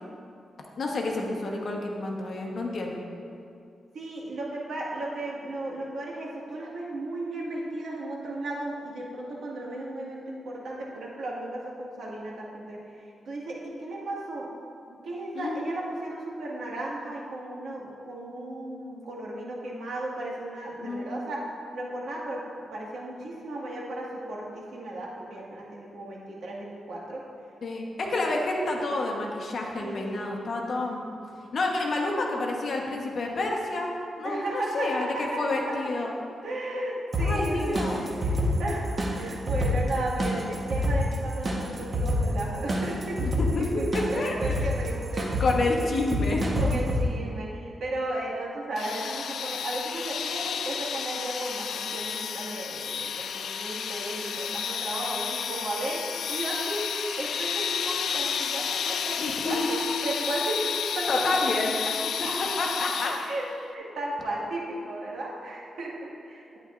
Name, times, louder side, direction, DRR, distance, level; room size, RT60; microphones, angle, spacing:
voice 1, 0.8-3.0 15.3-15.6 20.8-21.3 27.6-31.2 31.5-33.9 34.2-36.1 37.2-38.0 43.2-44.3 45.4-46.4 59.2-59.6 59.9-60.0 61.1-61.7 62.6-63.2, left 2 dB, 50° left, 0 dB, 1.1 m, -29 dB
voice 2, 3.9-14.5 14.9-21.5 21.7-22.5 22.7-27.2 29.8-30.5 34.2-35.8 36.4-43.2 43.7-45.8 46.6-61.4 62.2-62.5 63.1-66.6, right 1 dB, 70° right, -4 dB, 1.8 m, -35 dB
sound 1, 37.1-47.0, equal, 30° right, 1.1 m, -28 dB
sound 2, 48.8-63.5, left 7 dB, 80° left, 0.4 m, -31 dB
11.5 x 9.2 x 2.5 m, 2.4 s
wide cardioid pair, 140°, 0 cm